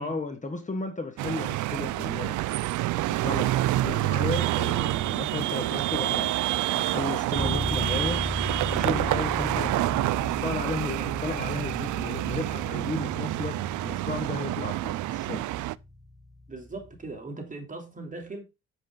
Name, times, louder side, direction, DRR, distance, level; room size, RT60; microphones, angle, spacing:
voice 1, 0.0-2.4 3.1-6.4 6.7-8.2 8.7-9.8 10.0-13.6 13.8-15.4, left 3 dB, 25° left, 1.5 m, -34 dB
sound 1, 1.2-15.8, right 16 dB, 75° right, 0.5 m, -28 dB
sound 2, 7.4-17.1, left 1 dB, ahead, 0.9 m, -36 dB
voice 2, 16.5-18.4, right 2 dB, 25° right, 3.5 m, -39 dB
7.9 x 7.7 x 3.9 m
cardioid pair, 90°, 30 cm